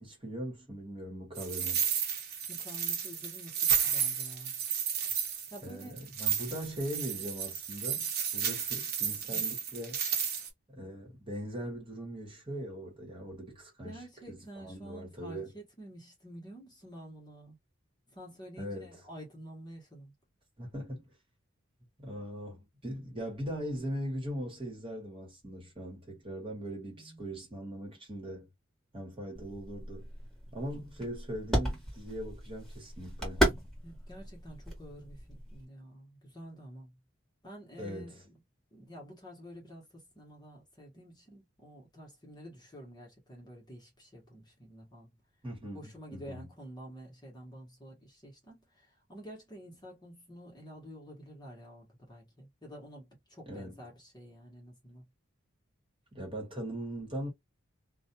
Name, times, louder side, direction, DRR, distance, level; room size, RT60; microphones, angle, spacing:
voice 1, 0.0-1.9 5.6-10.0 10.7-14.0 14.3-15.5 18.6-18.9 20.6-21.1 22.0-28.5 28.9-30.0 30.5-33.4 37.8-38.1 45.4-46.5 53.5-53.8 56.1-57.3, equal, 25° right, 1.2 m, -40 dB
sound 1, 1.4-10.5, right 8 dB, 50° right, 0.9 m, -32 dB
voice 2, 2.5-4.5 5.5-6.0 9.3-9.5 13.8-17.6 18.1-20.1 26.9-27.2 33.8-37.0 37.4-38.4 38.7-45.2 45.7-55.0, equal, 20° left, 1.0 m, -49 dB
sound 2, 29.3-35.6, equal, ahead, 1.2 m, -35 dB
2.4 x 2.2 x 2.7 m
head